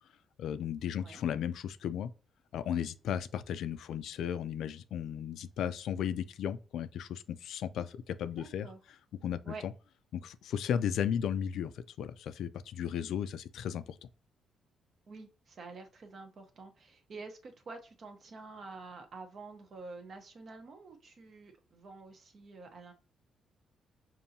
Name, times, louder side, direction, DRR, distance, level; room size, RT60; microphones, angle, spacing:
voice 1, 0.4-2.1 2.5-8.7 9.2-9.7 10.1-14.0, left 9 dB, 75° left, 0.3 m, -35 dB
voice 2, 8.4-8.8 9.4-9.6 15.1-22.9, right 3 dB, 50° right, 0.9 m, -48 dB
5.3 x 2.6 x 2.7 m
cardioid pair, 90°, 0 cm